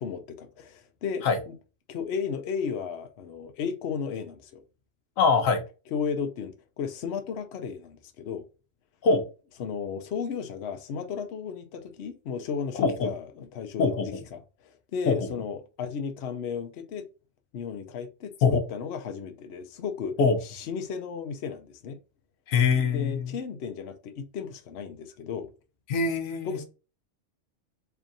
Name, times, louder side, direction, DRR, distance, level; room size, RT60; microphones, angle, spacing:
voice 1, 0.0-1.5 1.9-4.6 5.9-8.4 9.6-17.0 17.5-20.1 20.4-22.0 22.8-25.5 26.4-26.6, left 6 dB, 60° left, 0.9 m, -34 dB
voice 2, 5.2-5.6 9.0-9.2 12.7-13.1 13.8-14.2 15.1-15.3 18.4-18.6 20.2-20.4 22.5-23.3 25.9-26.6, left 5 dB, 85° left, 1.2 m, -23 dB
3.4 x 2.5 x 3.9 m
omnidirectional pair, 1.4 m